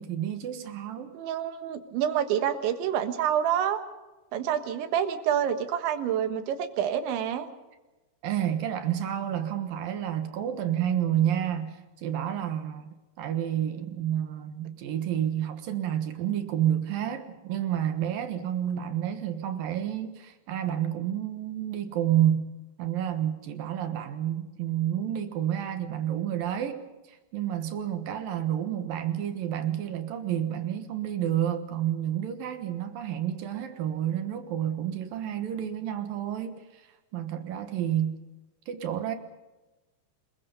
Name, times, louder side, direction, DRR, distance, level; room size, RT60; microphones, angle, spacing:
voice 1, 0.0-1.2 8.2-22.5 22.8-36.8 37.1-38.2 38.7-39.2, right 10 dB, 65° right, 2.6 m, -30 dB
voice 2, 1.1-3.8 4.3-7.5, right 9 dB, 85° right, 3.9 m, -27 dB
28.0 x 21.5 x 5.4 m
omnidirectional pair, 5.1 m